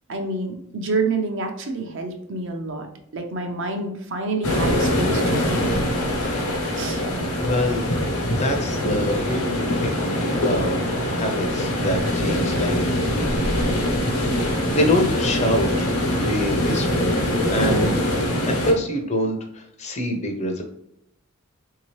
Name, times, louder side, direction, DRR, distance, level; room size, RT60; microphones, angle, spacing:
voice 1, 0.1-2.9 3.1-5.7 6.8-7.0, right 3 dB, 55° right, 4 dB, 0.6 m, -28 dB
sound 1, 4.4-18.7, left 1 dB, 85° left, 1.0 m, -23 dB
voice 2, 7.4-7.8 8.3-10.8 11.1-13.0 14.7-15.9 16.2-18.0 18.5-20.6, equal, 30° left, 3 dB, 0.5 m, -26 dB
3.6 x 2.8 x 3.1 m, 0.75 s
head